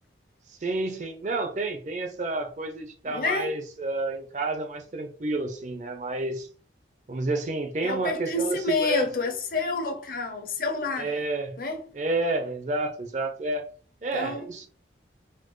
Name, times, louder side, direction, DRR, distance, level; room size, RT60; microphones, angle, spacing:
voice 1, 0.6-6.5 7.1-9.1 11.0-11.6 11.9-13.6 14.0-14.7, right 2 dB, 40° right, 0.5 m, -30 dB
voice 2, 3.1-3.5 7.8-11.1 11.6-11.9 14.1-14.5, left 3 dB, 50° left, 0.7 m, -28 dB
4.3 x 2.2 x 3.0 m
head